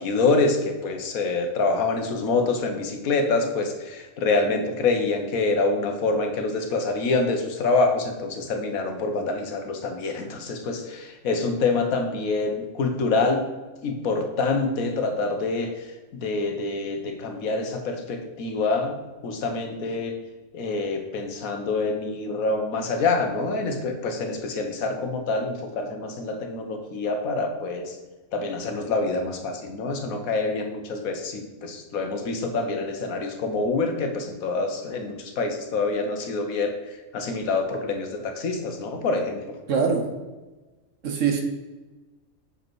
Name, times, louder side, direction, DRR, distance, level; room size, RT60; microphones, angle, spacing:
voice 1, 0.0-13.4 13.8-19.0 19.2-20.1 20.5-28.0 28.3-36.7 37.1-39.4, left 3 dB, 85° left, 5 dB, 1.4 m, -26 dB
voice 2, 39.7-40.1 41.0-41.4, right 6 dB, 65° right, 4 dB, 1.4 m, -22 dB
6.6 x 5.1 x 4.6 m, 1.2 s
omnidirectional pair, 1.4 m